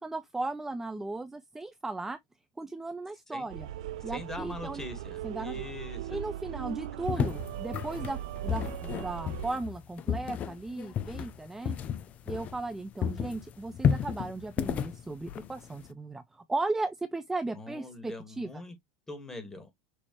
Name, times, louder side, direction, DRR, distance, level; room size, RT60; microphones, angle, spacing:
voice 1, 0.0-2.2 2.6-3.7 4.0-4.8 5.2-5.6 6.1-11.8 12.3-18.5, right 2 dB, 10° right, 0.5 m, -36 dB
sound 1, 3.5-9.5, right 12 dB, 80° right, 0.5 m, -39 dB
voice 2, 4.1-6.2 17.5-18.7 19.1-19.7, left 2 dB, 10° left, 1.8 m, -42 dB
sound 2, 7.1-12.8 13.0-15.9, left 8 dB, 40° left, 0.6 m, -32 dB
6.4 x 2.8 x 3.0 m
supercardioid pair, 105°, 4 cm